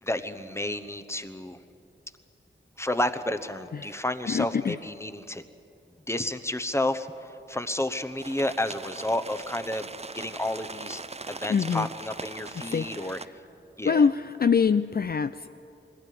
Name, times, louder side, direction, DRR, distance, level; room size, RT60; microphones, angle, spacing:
voice 1, 0.0-1.6 2.8-5.4 6.1-9.9 10.1-11.0 11.3-13.2 13.8-14.0, left 1 dB, 15° left, 10 dB, 1.0 m, -31 dB
voice 2, 3.7-4.8 11.5-11.9 12.5-13.3 13.8-15.5, left 6 dB, 50° left, 11 dB, 0.4 m, -25 dB
sound 1, 8.2-13.3, right 3 dB, 30° right, 0.6 m, -41 dB
21.5 x 15.5 x 9.4 m, 2.7 s
wide cardioid pair, 65°, 20 cm